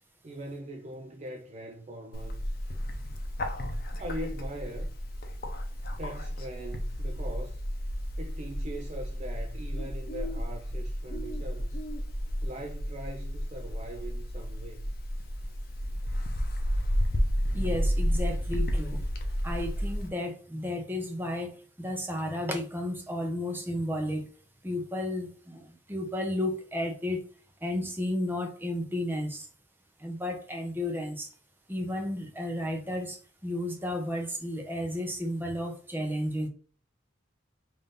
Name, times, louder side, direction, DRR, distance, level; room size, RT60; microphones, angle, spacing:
voice 1, 0.2-2.6 4.0-5.0 6.0-7.6 8.2-11.8 12.4-14.9, right 1 dB, 35° right, 0.4 m, -41 dB
Bird, 2.1-20.1, equal, 50° left, 0.7 m, -32 dB
voice 2, 17.5-19.1 19.4-24.3 24.6-27.2 27.6-29.5 30.0-31.3 31.7-36.5, left 1 dB, 10° right, 0.7 m, -33 dB
3.7 x 2.6 x 3.5 m
head